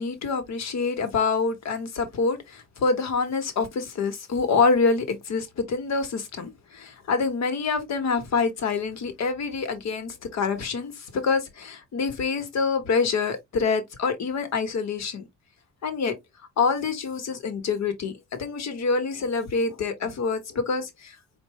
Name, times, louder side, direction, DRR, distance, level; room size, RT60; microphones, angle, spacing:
voice 1, 0.0-15.2 15.8-16.1 16.6-18.1 18.4-21.1, left 4 dB, 60° left, 1.4 m, -26 dB
4.6 x 2.6 x 3.1 m
cardioid pair, 90°, 30 cm